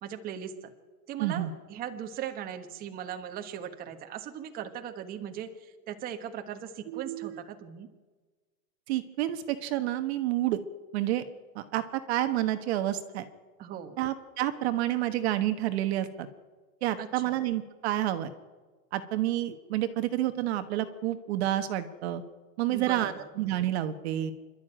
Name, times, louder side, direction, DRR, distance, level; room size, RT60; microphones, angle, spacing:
voice 1, 0.0-0.7 1.1-7.9 13.6-14.0 17.0-17.3 22.7-23.2, right 9 dB, 20° right, 5 dB, 1.4 m, -39 dB
voice 2, 1.2-1.5 6.9-7.4 8.9-10.6 10.9-11.2 11.5-13.2 14.0-16.3 16.8-18.3 18.9-22.2 22.6-24.3, right 13 dB, 45° right, 9 dB, 1.3 m, -29 dB
27.0 x 12.5 x 8.9 m, 1.4 s
supercardioid pair, 160°, 46 cm